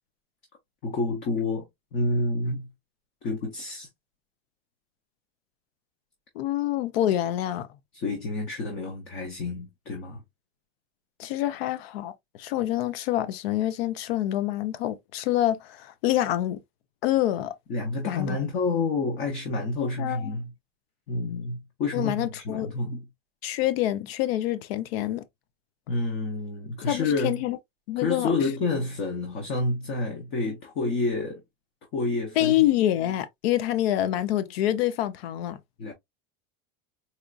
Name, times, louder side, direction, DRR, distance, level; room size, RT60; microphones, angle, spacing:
voice 1, 0.8-1.7 1.9-2.7 3.2-3.9 7.9-10.2 17.7-20.5 21.1-23.1 25.9-27.4 28.0-31.4 31.9-32.5 35.8-35.9, left 3 dB, 30° left, 0.7 m, -29 dB
voice 2, 6.4-7.7 11.2-12.1 12.4-16.6 17.0-17.5 18.1-18.4 19.8-20.4 21.9-22.7 23.4-25.2 26.8-27.6 27.9-28.3 32.4-35.6, left 13 dB, 80° left, 0.6 m, -26 dB
4.2 x 2.4 x 2.3 m
supercardioid pair, 180°, 30 cm